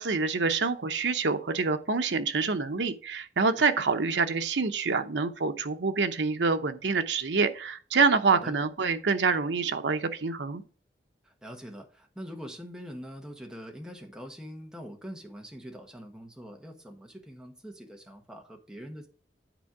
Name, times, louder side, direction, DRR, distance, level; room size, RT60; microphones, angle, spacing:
voice 1, 0.0-10.6, right 4 dB, 90° right, 8 dB, 0.8 m, -26 dB
voice 2, 8.3-8.6 11.2-19.1, equal, 5° right, 2 dB, 1.3 m, -43 dB
9.1 x 4.5 x 4.9 m, 0.40 s
head